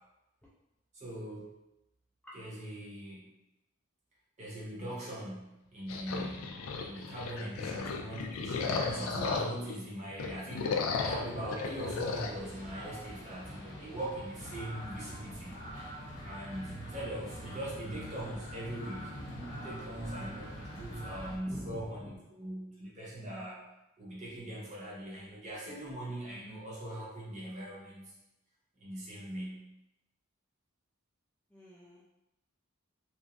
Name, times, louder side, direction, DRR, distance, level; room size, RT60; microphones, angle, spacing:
voice 1, 0.9-1.5 2.3-3.3 4.4-15.6 16.2-19.1 19.5-23.6 24.0-28.1 28.8-29.6, right 1 dB, 35° right, -6 dB, 0.8 m, -41 dB
sound 1, 5.9-9.8 10.1-12.3, left 4 dB, 85° left, 0.4 m, -35 dB
sound 2, 11.0-21.4, equal, 55° left, 0.7 m, -44 dB
voice 2, 21.5-22.1 31.5-32.0, left 1 dB, 5° left, -8 dB, 0.3 m, -46 dB
2.9 x 2.4 x 2.5 m, 0.92 s
head